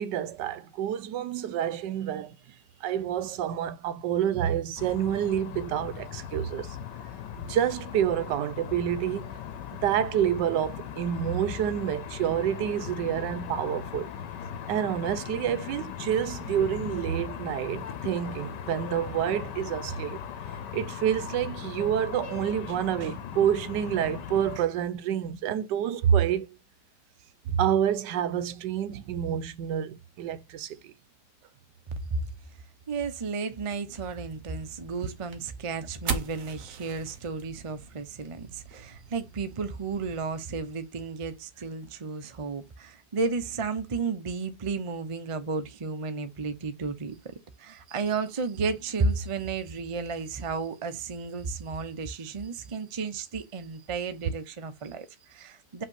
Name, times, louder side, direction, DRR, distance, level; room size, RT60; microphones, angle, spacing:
voice 1, 0.0-2.4 2.8-6.8 7.5-9.3 9.7-14.1 14.7-20.2 20.7-26.5 27.5-30.9, right 9 dB, 85° right, 1.3 m, -28 dB
sound 1, 4.8-24.6, left 8 dB, 80° left, 1.4 m, -39 dB
voice 2, 31.9-32.3 32.9-55.8, right 4 dB, 40° right, 0.4 m, -33 dB
sound 2, 33.9-40.7, right 5 dB, 55° right, 1.2 m, -40 dB
5.5 x 3.1 x 5.5 m
omnidirectional pair, 1.9 m